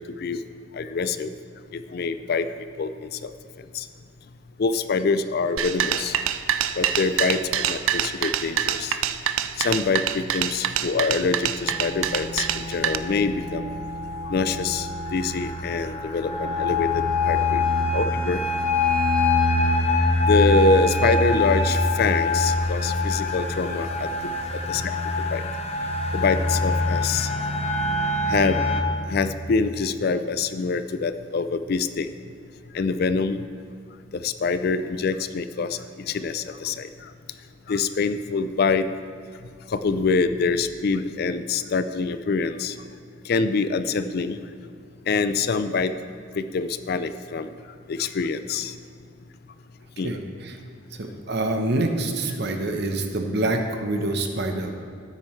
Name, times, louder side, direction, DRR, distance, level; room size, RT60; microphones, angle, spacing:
voice 1, 0.8-1.3 1.7-2.5 2.8-2.9 3.2-3.3 3.7-3.8 4.6-6.1 6.8-9.0 9.6-13.7 14.3-17.6 17.9-18.4 20.3-24.1 24.7-24.9 25.3-25.4 26.1-27.3 28.3-28.6 29.1-32.1 32.7-33.4 34.2-35.8 36.1-36.9 37.7-38.9 39.7-42.7 43.3-44.4 45.1-45.9 46.3-47.5 47.9-48.7 50.0-50.1, left 4 dB, 50° left, 11 dB, 0.4 m, -25 dB
sound 1, 5.6-13.0, right 10 dB, 90° right, 0.4 m, -25 dB
sound 2, 11.7-28.8, left 2 dB, 30° left, 0.8 m, -24 dB
voice 2, 51.0-54.8, right 2 dB, 55° right, 4 dB, 0.9 m, -26 dB
13.0 x 9.5 x 3.2 m, 2.3 s
head